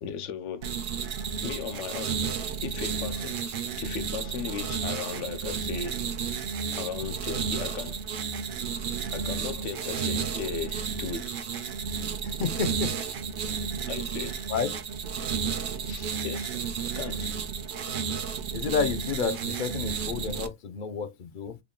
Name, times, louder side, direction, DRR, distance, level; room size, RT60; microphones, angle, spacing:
voice 1, 0.0-0.8 1.4-2.3 2.6-6.0 6.7-8.0 9.1-12.0 13.9-14.5 15.9-17.4, left 7 dB, 85° left, 0.9 m, -37 dB
sound 1, 0.6-20.5, right 6 dB, 60° right, 0.6 m, -32 dB
voice 2, 12.2-12.9 14.5-14.8 18.5-21.6, left 6 dB, 55° left, 0.6 m, -30 dB
3.5 x 2.2 x 3.7 m
omnidirectional pair, 1.2 m